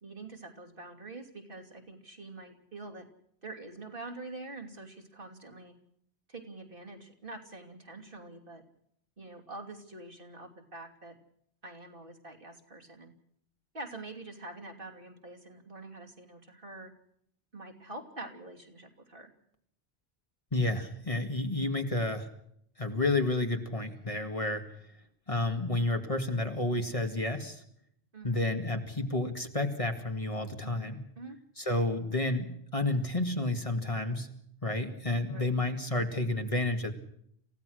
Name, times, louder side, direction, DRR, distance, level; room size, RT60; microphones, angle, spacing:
voice 1, 0.0-3.0 3.4-5.7 6.3-8.6 9.2-11.1 11.6-13.1 13.7-16.9 17.5-19.3 28.1-28.5 30.6-30.8 31.2-31.4 35.3-35.6, right 2 dB, 50° right, 2 dB, 3.2 m, -45 dB
voice 2, 20.5-22.3 22.8-24.6 25.3-27.6 28.2-31.0 31.6-34.3 34.6-36.9, left 2 dB, 30° left, 4 dB, 2.2 m, -30 dB
28.0 x 16.5 x 6.5 m, 0.70 s
omnidirectional pair, 1.1 m